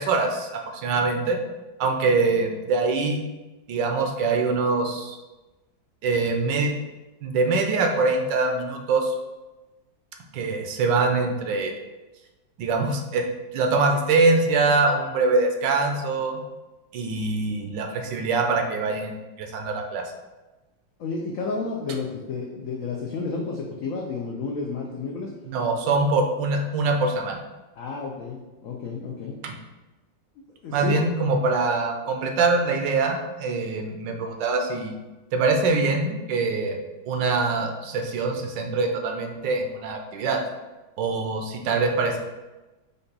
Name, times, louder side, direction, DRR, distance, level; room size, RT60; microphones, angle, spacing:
voice 1, 0.0-1.4 1.8-3.2 3.7-5.2 6.0-6.7 7.2-9.1 10.3-11.8 12.6-13.3 13.5-16.4 16.9-20.0 25.5-27.4 29.4-29.5 30.7-34.9 35.3-36.8 37.1-40.4 41.0-42.2, right 3 dB, 75° right, 3 dB, 1.2 m, -23 dB
voice 2, 21.0-25.3 27.8-29.4 30.6-31.0, left 4 dB, 85° left, -1 dB, 0.7 m, -31 dB
5.3 x 2.3 x 3.9 m, 1.1 s
omnidirectional pair, 2.1 m